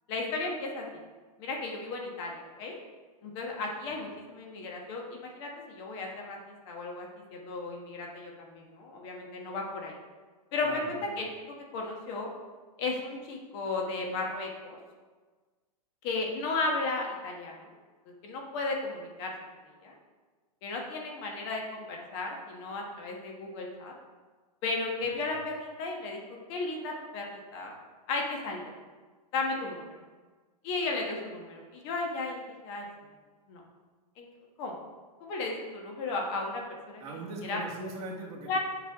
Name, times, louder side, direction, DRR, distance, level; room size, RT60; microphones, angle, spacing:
voice 1, 0.1-0.9 1.4-2.7 3.2-10.0 10.5-11.3 11.7-12.3 12.8-14.8 16.0-17.7 18.1-19.3 19.8-19.9 20.6-23.9 24.6-26.2 26.5-27.7 28.1-28.7 29.3-30.0 30.6-32.9 33.5-33.6 34.2-34.3 34.6-34.8 35.2-36.6 36.9-37.0 37.4-37.6 38.5-38.6, left 3 dB, 45° left, 0 dB, 1.4 m, -34 dB
voice 2, 10.6-11.1 25.3-25.4 37.0-38.6, right 2 dB, 30° right, -2 dB, 1.5 m, -40 dB
7.5 x 5.7 x 3.6 m, 1.4 s
hypercardioid pair, 135°, 20 cm